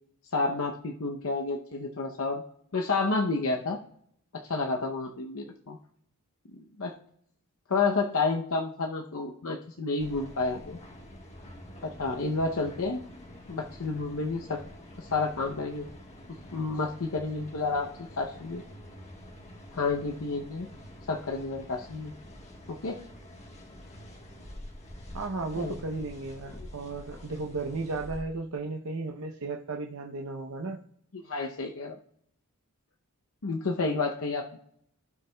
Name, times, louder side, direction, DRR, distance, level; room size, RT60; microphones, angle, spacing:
voice 1, 0.3-2.4 2.7-3.8 4.4-5.8 6.5-6.9 7.7-10.8 11.8-13.0 13.5-14.6 15.0-15.9 16.5-17.9 18.2-18.6 19.7-20.7 21.1-22.1 22.7-23.0 25.6-25.8 26.6-26.7 31.1-32.0 33.4-34.6, left 3 dB, 65° left, 3 dB, 0.7 m, -30 dB
sound 1, 10.0-28.2, equal, 30° left, 1.3 m, -47 dB
voice 2, 25.1-30.8, right 3 dB, 70° right, 2 dB, 0.7 m, -35 dB
16.5 x 6.6 x 2.2 m, 0.69 s
head